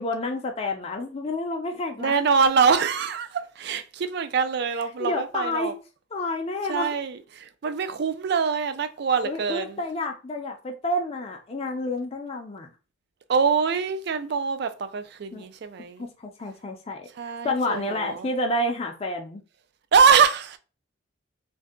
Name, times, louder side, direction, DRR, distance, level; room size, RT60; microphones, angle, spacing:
voice 1, 0.0-2.2 5.0-5.7 6.1-6.9 9.2-12.7 15.3-15.4 16.0-17.1 17.4-19.4, left 1 dB, 30° left, 0.4 m, -29 dB
voice 2, 2.0-5.7 6.7-9.8 13.3-16.1 17.2-18.3 19.9-20.6, right 6 dB, 55° right, 0.4 m, -24 dB
2.6 x 2.2 x 3.5 m
head